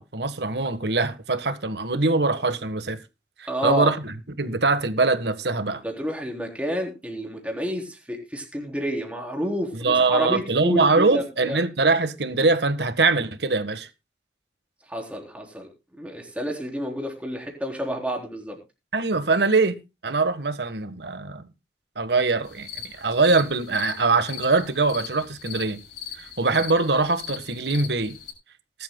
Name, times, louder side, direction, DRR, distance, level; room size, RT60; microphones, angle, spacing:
voice 1, 0.0-3.0 3.4-5.8 9.7-13.9 18.9-21.4 21.9-25.8 26.2-28.2, right 3 dB, 65° right, 1.4 m, -23 dB
voice 2, 3.5-3.9 5.8-11.6 14.9-15.7 16.0-18.6, equal, 5° right, 3.7 m, -29 dB
sound 1, 22.4-28.3, left 8 dB, 65° left, 7.3 m, -39 dB
19.5 x 12.0 x 2.2 m
head